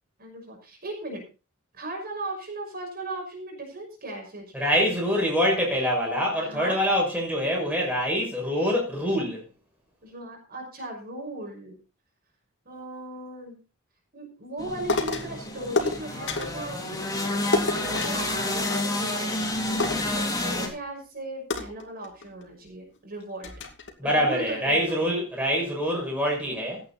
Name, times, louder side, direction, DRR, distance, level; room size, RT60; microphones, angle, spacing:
voice 1, 0.2-1.2 1.7-4.5 6.3-6.8 10.0-11.8 12.7-13.6 14.1-19.6 20.1-23.5 24.0-25.2, right 1 dB, 45° right, 5.9 m, -37 dB
voice 2, 4.5-9.4 20.0-20.2 24.0-26.8, equal, 5° right, 6.6 m, -25 dB
sound 1, 14.6-20.7, left 1 dB, 15° left, 3.3 m, -29 dB
sound 2, 14.9-15.4 15.8-16.6 17.5-19.1 19.4-19.5 19.8-20.8 21.5-22.5 23.0-23.1 23.4-23.9, left 3 dB, 60° left, 2.6 m, -30 dB
16.5 x 9.4 x 4.2 m
head